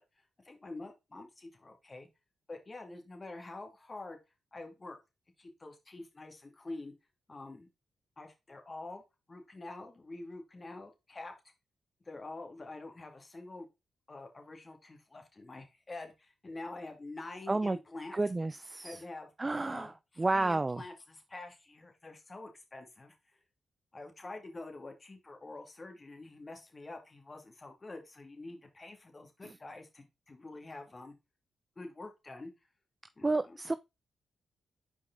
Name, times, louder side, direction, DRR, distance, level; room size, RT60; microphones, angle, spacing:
voice 1, 0.4-2.1 2.5-4.2 4.5-5.0 5.4-6.9 7.3-7.7 8.2-9.0 9.3-11.3 12.1-13.7 14.1-18.2 18.8-19.3 19.6-23.2 23.9-31.1 31.8-32.5 33.2-33.6, left 2 dB, 35° left, 2.3 m, -46 dB
voice 2, 18.1-19.0 19.4-19.9 20.2-20.8 29.4-29.5 33.2-33.7, right 2 dB, 30° right, 0.4 m, -30 dB
5.3 x 4.8 x 3.8 m
supercardioid pair, 45°, 0 cm